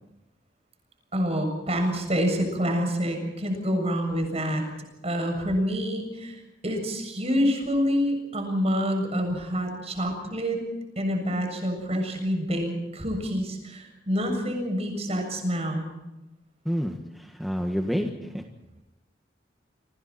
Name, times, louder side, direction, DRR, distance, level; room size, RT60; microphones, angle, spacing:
voice 1, 1.1-4.6 5.0-10.6 11.0-15.9, equal, 35° right, 4 dB, 7.3 m, -27 dB
voice 2, 16.6-18.4, equal, ahead, 2 dB, 1.7 m, -29 dB
27.5 x 26.5 x 4.4 m, 0.99 s
head